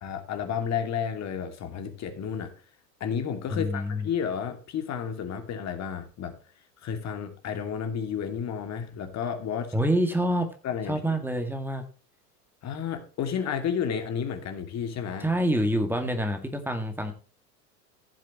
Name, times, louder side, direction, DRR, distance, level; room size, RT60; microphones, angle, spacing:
voice 1, 0.0-2.5 3.0-6.3 6.8-9.7 10.6-11.2 12.6-15.3, left 7 dB, 30° left, 7 dB, 2.5 m, -31 dB
voice 2, 3.5-4.1 9.7-10.5 10.9-11.8 15.2-17.1, equal, 5° right, 6 dB, 2.0 m, -26 dB
15.5 x 7.3 x 3.1 m, 0.37 s
figure-of-eight pair, 90°, 50 cm